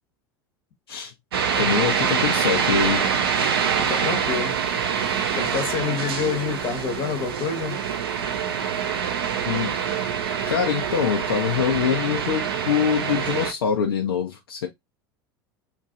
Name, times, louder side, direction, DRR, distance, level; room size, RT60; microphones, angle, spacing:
sound 1, 1.3-13.5, right 7 dB, 70° right, 0.6 m, -25 dB
voice 1, 1.5-3.1 9.5-9.7 10.5-14.7, left 8 dB, 75° left, 0.6 m, -24 dB
voice 2, 3.8-4.6 5.3-7.8, left 6 dB, 45° left, 1.0 m, -27 dB
3.0 x 2.6 x 3.6 m
figure-of-eight pair, 80°, 13 cm